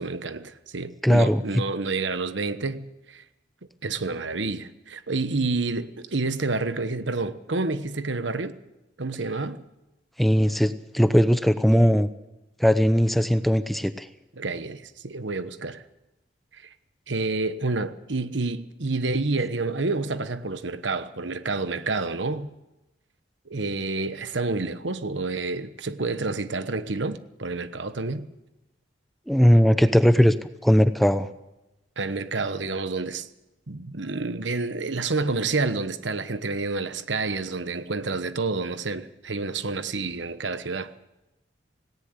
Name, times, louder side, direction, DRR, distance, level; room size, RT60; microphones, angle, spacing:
voice 1, 0.0-3.2 3.8-8.5 9.0-9.6 14.4-15.8 16.5-16.7 17.1-22.5 23.5-28.3 32.0-33.3 33.7-40.9, right 3 dB, 80° right, 1.2 m, -29 dB
voice 2, 1.0-1.4 10.2-12.1 12.6-14.1 29.3-30.3 30.6-31.3, equal, ahead, 0.7 m, -19 dB
18.0 x 18.0 x 8.3 m
head